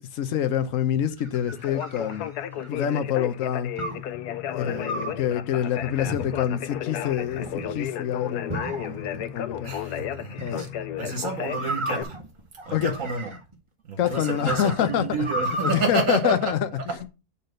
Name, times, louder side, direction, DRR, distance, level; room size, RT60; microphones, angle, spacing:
voice 1, 0.0-2.3 2.7-3.7 4.5-9.7 10.4-10.7 12.7-12.9 14.0-15.0 15.6-16.6, left 10 dB, 60° left, 1.1 m, -26 dB
sound 1, 0.9-2.8 3.8-4.1 4.8-5.3 6.0-6.6 7.2-7.8 8.5-9.3 10.4-10.7 11.5-13.5 14.0-15.9, right 1 dB, 20° right, 1.1 m, -34 dB
Conversation, 1.5-12.0, left 10 dB, 80° left, 1.2 m, -33 dB
sound 2, 4.1-11.5, left 5 dB, 25° left, 0.9 m, -47 dB
voice 2, 9.6-12.2 12.6-13.3 13.8-17.1, right 4 dB, 55° right, 1.5 m, -30 dB
8.4 x 4.1 x 5.1 m
omnidirectional pair, 1.7 m